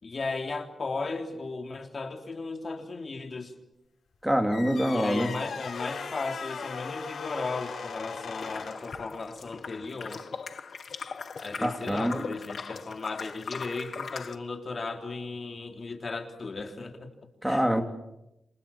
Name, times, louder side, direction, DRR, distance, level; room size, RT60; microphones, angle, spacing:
voice 1, 0.0-3.5 4.8-10.3 11.4-17.1 17.4-17.7, left 3 dB, 50° left, 5 dB, 3.4 m, -35 dB
voice 2, 4.2-5.3 11.6-12.2 17.4-17.8, equal, 5° right, 5 dB, 3.2 m, -25 dB
sound 1, 4.5-8.9, left 5 dB, 85° left, 7.0 m, -38 dB
sound 2, 8.3-14.4, left 5 dB, 65° left, 1.3 m, -40 dB
28.5 x 27.0 x 7.4 m, 0.88 s
wide cardioid pair, 100°, 0 cm